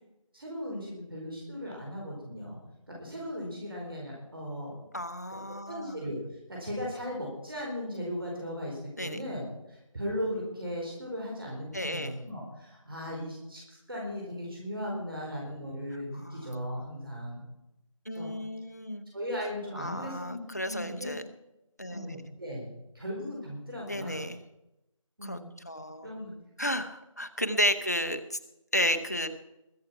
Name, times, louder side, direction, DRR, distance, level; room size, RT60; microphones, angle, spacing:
voice 1, 0.3-2.6 2.9-4.8 5.3-5.4 5.7-6.2 6.5-9.4 9.7-17.4 18.1-18.3 19.1-21.1 21.9-24.2 25.2-25.5 26.0-26.3, equal, 45° right, -3 dB, 4.3 m, -37 dB
voice 2, 4.9-6.0 9.0-9.2 11.7-12.1 16.2-16.5 18.1-19.1 19.8-21.2 21.8-22.2 23.9-24.4 25.2-25.4 25.7-26.1 26.6-28.4 28.7-29.3, equal, 30° left, 11 dB, 0.8 m, -32 dB
21.0 x 7.1 x 5.9 m, 0.91 s
figure-of-eight pair, 170°, 17 cm